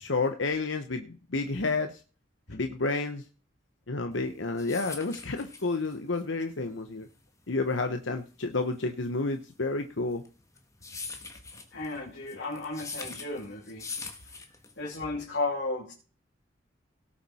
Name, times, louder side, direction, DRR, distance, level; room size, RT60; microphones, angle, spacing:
voice 1, 0.0-2.0 2.5-3.2 3.9-7.1 7.5-10.2, left 3 dB, 85° left, 1.0 m, -30 dB
sound 1, 4.2-15.0, left 4 dB, 15° left, 1.4 m, -43 dB
voice 2, 11.7-13.9 14.8-15.9, left 2 dB, 65° left, 2.9 m, -34 dB
18.0 x 7.3 x 4.3 m
head